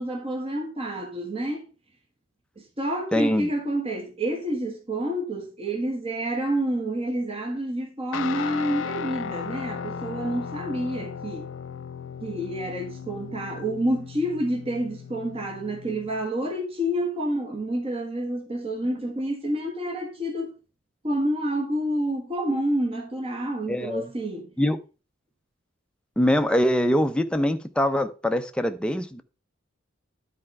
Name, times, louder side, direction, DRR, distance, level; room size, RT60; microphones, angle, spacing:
voice 1, 0.0-1.6 2.6-11.5 12.2-20.5 21.0-24.5, right 1 dB, 30° right, 1.5 m, -28 dB
voice 2, 3.1-3.5 23.7-24.1 24.6-24.8 26.2-29.2, equal, 5° left, 0.6 m, -23 dB
Guitar, 8.1-16.3, left 7 dB, 70° left, 0.4 m, -36 dB
11.0 x 4.3 x 4.7 m
head